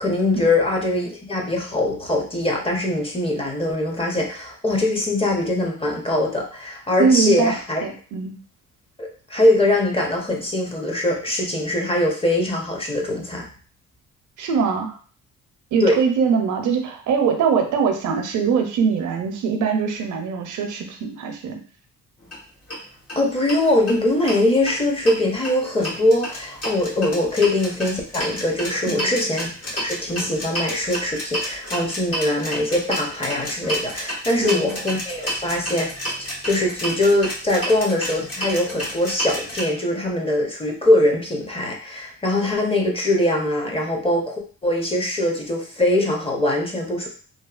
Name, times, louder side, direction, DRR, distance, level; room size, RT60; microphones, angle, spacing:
voice 1, 0.0-7.8 9.0-13.5 15.8-16.0 23.1-35.9 36.2-47.1, left 1 dB, 20° left, 0 dB, 0.7 m, -22 dB
voice 2, 7.0-7.6 7.8-8.4 14.4-15.0 15.7-21.6 28.9-29.2 34.4-34.8, right 6 dB, 75° right, 4 dB, 0.6 m, -22 dB
sound 1, 22.2-22.4 22.7-22.8 23.1-23.2 23.5-24.4 24.7-39.6, equal, 50° left, 1.3 m, -30 dB
2.7 x 2.3 x 2.4 m, 0.41 s
cardioid pair, 90°, 30 cm